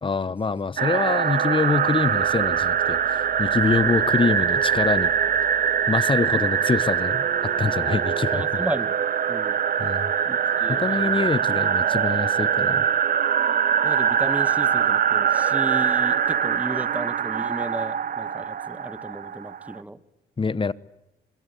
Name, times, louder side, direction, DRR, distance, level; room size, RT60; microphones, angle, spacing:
voice 1, 0.0-5.1 5.9-8.4 9.8-10.1 10.7-12.8 20.4-20.7, left 4 dB, 25° left, 1.1 m, -25 dB
sound 1, 0.8-19.8, right 8 dB, 45° right, 1.0 m, -23 dB
sound 2, 1.6-8.4, equal, 10° left, 6.4 m, -42 dB
voice 2, 3.5-4.0 8.3-9.0 9.3-9.6 10.2-11.3 12.0-12.1 13.8-20.0, right 1 dB, 5° right, 1.7 m, -34 dB
25.5 x 22.5 x 8.5 m
cardioid pair, 90°, 20 cm